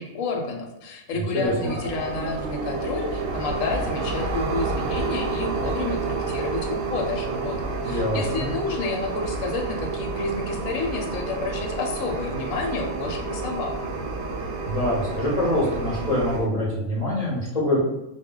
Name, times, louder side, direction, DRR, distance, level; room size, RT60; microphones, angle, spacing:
voice 1, 0.0-13.8, left 3 dB, 75° left, 2 dB, 1.0 m, -30 dB
voice 2, 1.1-1.7 7.8-8.5 14.7-17.8, left 1 dB, 35° left, -5 dB, 0.6 m, -25 dB
sound 1, 1.5-16.5, right 3 dB, 70° right, 0.9 m, -29 dB
2.2 x 2.2 x 3.6 m, 0.92 s
omnidirectional pair, 1.4 m